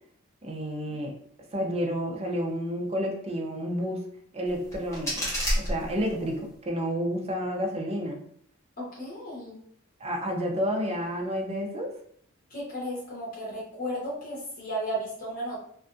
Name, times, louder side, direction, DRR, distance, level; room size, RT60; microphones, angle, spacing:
voice 1, 0.4-1.1 1.5-4.0 4.3-5.3 5.5-6.4 6.7-8.2 10.0-11.9, equal, 30° right, 1 dB, 0.5 m, -30 dB
sound 1, 4.5-6.4, equal, 15° left, 0.8 m, -31 dB
voice 2, 8.8-9.6 12.5-15.6, equal, 40° left, -5 dB, 1.0 m, -34 dB
2.5 x 2.2 x 2.5 m, 0.63 s
head